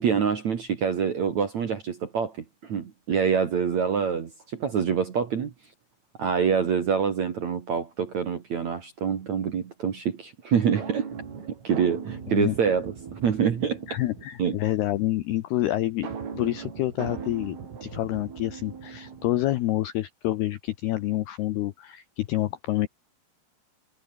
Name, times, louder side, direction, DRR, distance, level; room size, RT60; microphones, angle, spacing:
voice 1, 0.0-5.5 6.2-11.1 11.6-13.8 14.4-14.6, right 7 dB, 55° right, 2.2 m, -26 dB
sound 1, 10.8-14.5 16.0-19.6, right 6 dB, 75° right, 8.2 m, -39 dB
voice 2, 13.9-16.1 16.3-22.9, left 15 dB, 80° left, 2.3 m, -28 dB
omnidirectional pair, 5.9 m